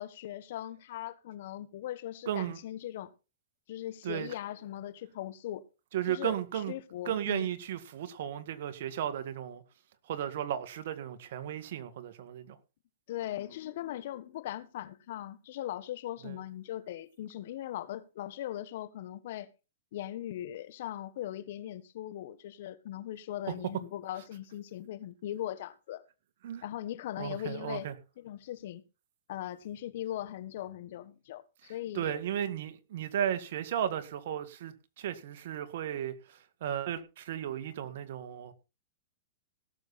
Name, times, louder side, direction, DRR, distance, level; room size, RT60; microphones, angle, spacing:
voice 1, 0.0-3.1 3.7-5.7 6.1-6.4 6.7-7.5 13.1-19.5 19.9-26.0 26.6-27.9 28.2-28.8 29.3-32.2, left 12 dB, 60° left, 1.3 m, -39 dB
voice 2, 2.3-2.6 4.0-4.3 5.9-6.7 7.0-9.6 10.1-12.6 16.2-16.4 23.5-23.6 26.4-26.6 27.2-27.9 31.9-38.5, right 10 dB, 65° right, 1.9 m, -35 dB
17.5 x 7.1 x 4.3 m
hypercardioid pair, 135°, 0 cm